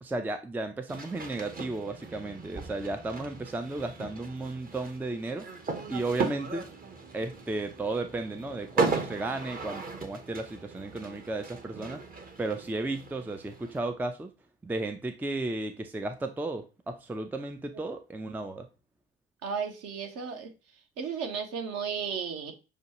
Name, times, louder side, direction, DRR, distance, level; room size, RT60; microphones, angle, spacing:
voice 1, 0.0-5.5 5.9-6.7 7.1-12.0 12.4-14.3 14.6-18.7, right 2 dB, 5° right, 8 dB, 0.5 m, -34 dB
sound 1, 0.9-13.8, right 4 dB, 30° right, 1.0 m, -37 dB
voice 2, 19.4-20.5 21.0-22.5, right 6 dB, 50° right, 5 dB, 1.1 m, -34 dB
6.5 x 2.3 x 2.9 m, 0.31 s
figure-of-eight pair, 60°, 31 cm